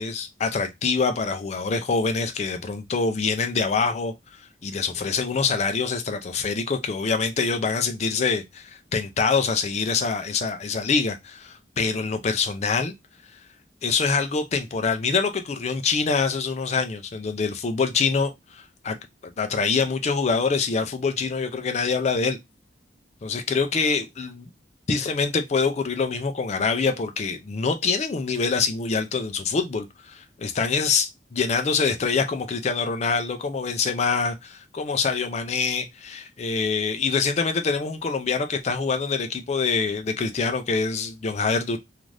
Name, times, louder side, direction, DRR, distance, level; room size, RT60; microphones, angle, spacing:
voice 1, 0.0-12.9 13.8-19.0 19.4-22.4 23.2-24.5 24.9-41.8, left 4 dB, 40° left, 0.4 m, -25 dB
2.5 x 2.4 x 3.1 m
head